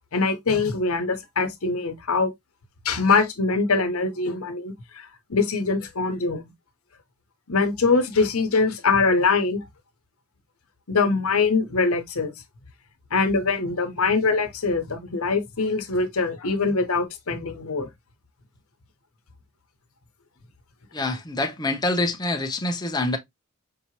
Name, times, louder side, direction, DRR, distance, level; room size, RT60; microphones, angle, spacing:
voice 1, 0.1-2.3 2.8-6.5 7.5-9.6 10.9-12.3 13.1-17.9, left 4 dB, 75° left, 0.9 m, -23 dB
voice 2, 20.9-23.2, left 2 dB, 20° left, 0.6 m, -26 dB
5.4 x 2.8 x 2.8 m
head